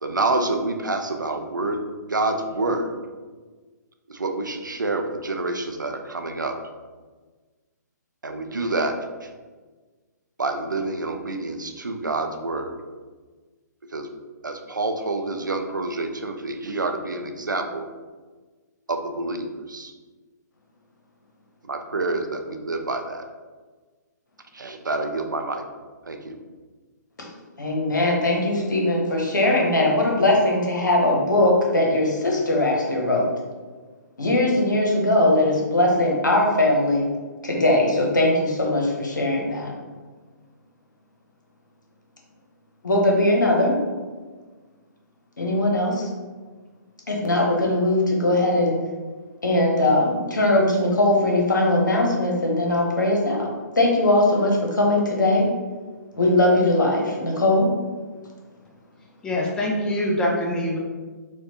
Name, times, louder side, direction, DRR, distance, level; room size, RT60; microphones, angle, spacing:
voice 1, 0.0-1.8 2.1-3.0 4.1-6.6 8.2-9.3 10.4-12.8 13.9-14.1 14.4-17.8 18.9-19.9 21.6-23.3 24.5-25.6 26.1-26.4, right 2 dB, 85° right, 5 dB, 0.4 m, -27 dB
voice 2, 27.6-33.3 34.2-37.1 37.4-39.7 42.8-43.8 45.4-46.1 47.1-48.8 49.4-53.5 53.8-55.5 56.1-57.7, left 1 dB, 75° left, -1 dB, 0.9 m, -20 dB
voice 3, 59.2-60.8, left 1 dB, 10° left, -3 dB, 0.5 m, -24 dB
4.3 x 2.3 x 2.8 m, 1.4 s
figure-of-eight pair, 125°, 10 cm